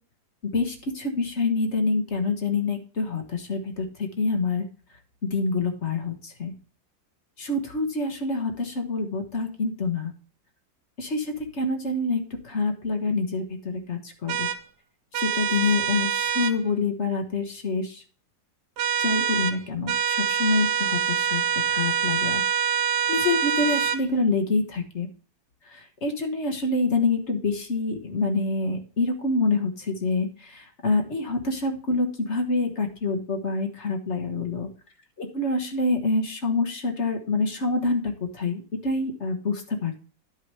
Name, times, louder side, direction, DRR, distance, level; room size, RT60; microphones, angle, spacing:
voice 1, 0.5-4.7 5.2-6.5 7.4-10.1 11.0-14.5 15.1-18.0 19.0-22.4 23.1-25.1 25.7-34.7 35.2-40.0, left 3 dB, 40° left, 5 dB, 1.5 m, -26 dB
sound 1, 14.3-14.6 15.1-16.6 18.8-19.6 19.9-24.0, right 7 dB, 70° right, 1.2 m, -25 dB
11.0 x 4.9 x 4.7 m, 0.39 s
omnidirectional pair, 2.0 m